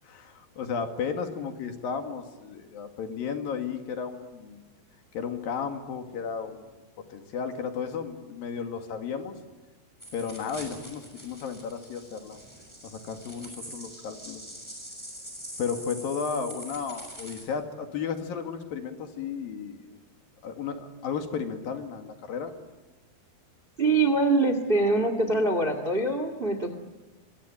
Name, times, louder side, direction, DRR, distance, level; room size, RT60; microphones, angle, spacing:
voice 1, 0.0-4.6 5.1-6.6 7.1-9.4 10.1-12.4 12.8-14.4 15.6-19.8 20.4-22.5, left 6 dB, 60° left, 5 dB, 3.6 m, -34 dB
sound 1, 10.0-17.4, equal, 5° right, 5.9 m, -44 dB
voice 2, 23.8-26.8, right 2 dB, 50° right, 9 dB, 0.6 m, -24 dB
26.0 x 22.5 x 8.8 m, 1.2 s
omnidirectional pair, 5.0 m